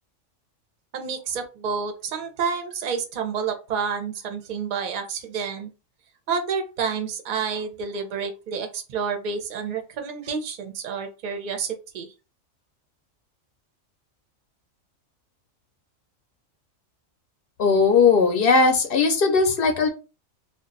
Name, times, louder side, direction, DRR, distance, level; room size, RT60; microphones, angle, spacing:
voice 1, 0.9-5.7 6.3-12.1, right 6 dB, 50° right, 5 dB, 0.6 m, -29 dB
voice 2, 17.6-19.9, left 4 dB, 60° left, 5 dB, 0.6 m, -18 dB
2.3 x 2.2 x 3.8 m, 0.30 s
omnidirectional pair, 1.4 m